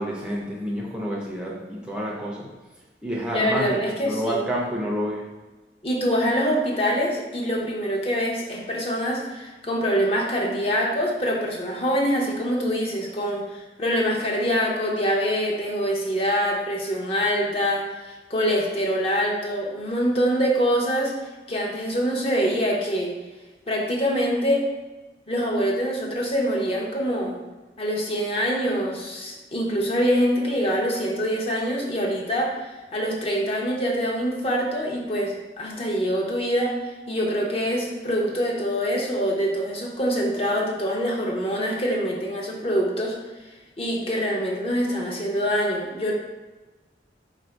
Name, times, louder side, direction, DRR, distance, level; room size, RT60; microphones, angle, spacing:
voice 1, 0.0-2.5 3.0-5.3, equal, 5° right, -4 dB, 0.5 m, -29 dB
voice 2, 3.3-4.4 5.8-21.1 21.5-23.1 23.7-24.7 25.3-27.4 27.8-32.5 32.9-36.7 37.1-43.1 43.8-46.1, equal, 35° left, -2 dB, 0.8 m, -24 dB
4.3 x 2.6 x 4.4 m, 1.2 s
head